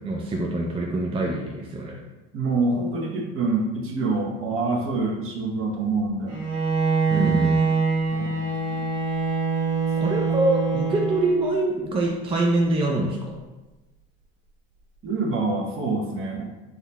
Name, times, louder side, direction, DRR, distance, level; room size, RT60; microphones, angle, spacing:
voice 1, 0.1-2.0 7.1-7.6 10.0-13.4, right 2 dB, 20° right, 0 dB, 0.4 m, -24 dB
voice 2, 2.3-6.3 7.1-7.3 8.1-8.9 15.0-16.4, right 3 dB, 45° right, -1 dB, 0.9 m, -26 dB
Bowed string instrument, 6.3-11.6, right 4 dB, 80° right, 1.1 m, -24 dB
3.7 x 2.7 x 2.2 m, 1.1 s
supercardioid pair, 85°, 30 cm